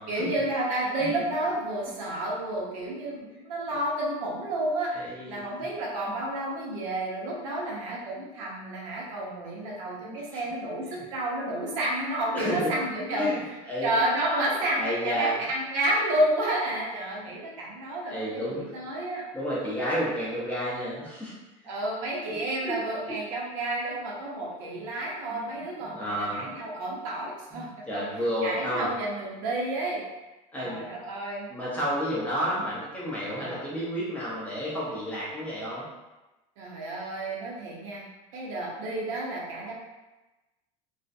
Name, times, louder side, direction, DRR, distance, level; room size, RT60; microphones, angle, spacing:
voice 1, 0.0-13.6 13.8-19.2 21.7-28.1 28.4-30.0 30.5-31.6 33.4-33.6 36.6-38.0 38.3-39.7, right 1 dB, 85° right, -3 dB, 0.8 m, -30 dB
voice 2, 4.9-5.4 10.0-10.4 10.9-11.0 11.4-11.5 12.3-12.7 13.1-14.0 14.4-15.4 18.1-18.7 19.3-21.4 22.3-22.8 24.7-24.9 25.3-25.5 25.9-26.5 27.5-28.9 30.5-30.9 31.5-35.9, equal, 10° left, -7 dB, 0.5 m, -31 dB
2.4 x 2.1 x 2.5 m, 1.1 s
cardioid pair, 160°, 17 cm